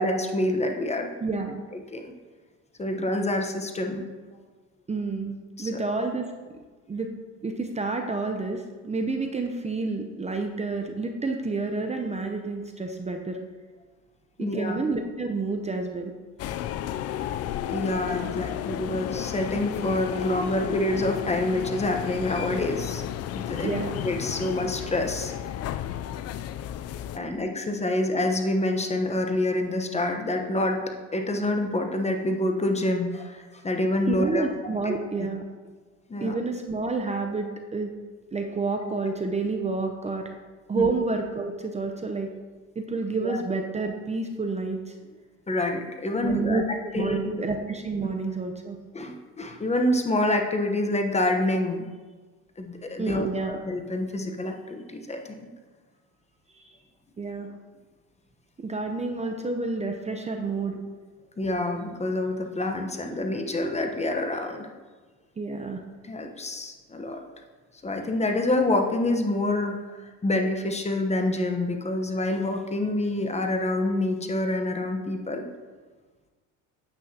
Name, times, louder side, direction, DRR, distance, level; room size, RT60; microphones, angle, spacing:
voice 1, 0.0-1.1 1.9-2.1 2.8-4.1 5.6-5.9 14.4-14.8 17.7-23.0 23.3-23.7 24.0-25.3 27.1-30.8 31.1-34.5 34.8-34.9 36.1-36.4 40.7-40.9 43.2-43.4 45.5-46.6 46.9-47.5 48.9-51.9 52.6-55.5 61.4-64.7 66.0-67.2 67.8-75.5, left 1 dB, 20° left, 4 dB, 1.0 m, -27 dB
voice 2, 1.2-1.6 4.9-6.3 6.9-7.1 7.4-13.4 14.4-16.1 23.6-24.0 34.1-35.4 36.2-37.9 38.3-40.3 40.7-42.3 42.8-44.9 46.2-46.6 46.9-48.8 53.0-53.6 56.5-56.7 57.2-57.5 58.6-60.8 65.4-65.8, right 3 dB, 20° right, 4 dB, 0.7 m, -29 dB
sound 1, 16.4-27.2, left 11 dB, 45° left, 0.4 m, -32 dB
9.2 x 8.0 x 2.8 m, 1.3 s
supercardioid pair, 90°, 34 cm